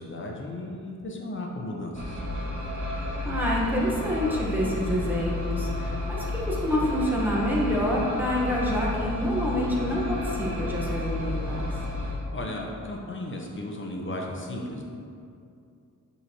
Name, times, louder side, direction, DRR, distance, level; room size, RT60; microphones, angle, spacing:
voice 1, 0.0-2.2 12.3-14.8, left 1 dB, 35° left, 0 dB, 0.8 m, -35 dB
sound 1, 1.9-12.1, left 2 dB, 60° right, 1.2 m, -31 dB
voice 2, 3.2-11.7, equal, 5° right, -4 dB, 1.0 m, -27 dB
6.1 x 5.7 x 2.9 m, 2.5 s
wide cardioid pair, 125°, 33 cm